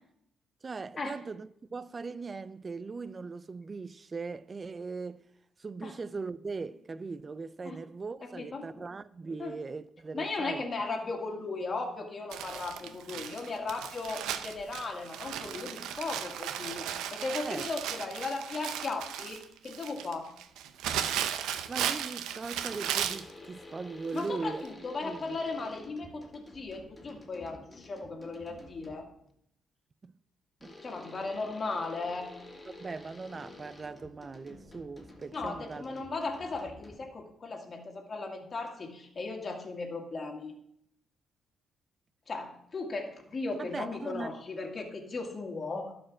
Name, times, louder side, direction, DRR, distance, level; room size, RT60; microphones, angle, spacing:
voice 1, 0.6-5.2 5.6-10.7 17.4-17.7 21.0-24.6 25.0-25.4 30.0-30.1 30.6-30.8 32.7-36.0 43.6-44.3, right 4 dB, 30° right, 0.5 m, -40 dB
voice 2, 8.2-8.9 9.4-9.6 10.1-20.3 24.1-29.1 30.8-32.3 35.3-40.5 42.3-45.9, left 3 dB, 35° left, 2.1 m, -37 dB
Crumpling crinkling, 12.3-23.3 24.2-24.3 24.6-24.7, right 9 dB, 90° right, 0.7 m, -36 dB
sound 1, 22.6-29.2 30.6-37.3, left 2 dB, 15° left, 2.7 m, -50 dB
12.0 x 5.1 x 6.1 m
cardioid pair, 90°, 0 cm